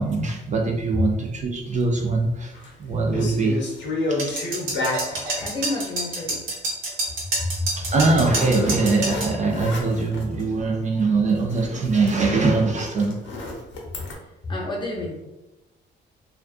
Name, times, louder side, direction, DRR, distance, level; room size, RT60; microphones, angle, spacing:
voice 1, 0.0-3.6 4.1-4.4 7.8-13.2, right 3 dB, 40° right, 1 dB, 0.4 m, -22 dB
sound 1, 2.3-2.7 3.1-5.6 7.9-10.5 10.9-11.0 11.3-14.1, left 2 dB, 70° left, 0.7 m, -31 dB
sound 2, 4.2-9.3, right 2 dB, 90° right, 1.0 m, -27 dB
voice 2, 5.0-6.5 7.0-7.2 7.5-8.0 14.4-15.2, left 2 dB, 25° left, -2 dB, 0.7 m, -30 dB
2.4 x 2.3 x 2.4 m, 1.0 s
cardioid pair, 90°, 20 cm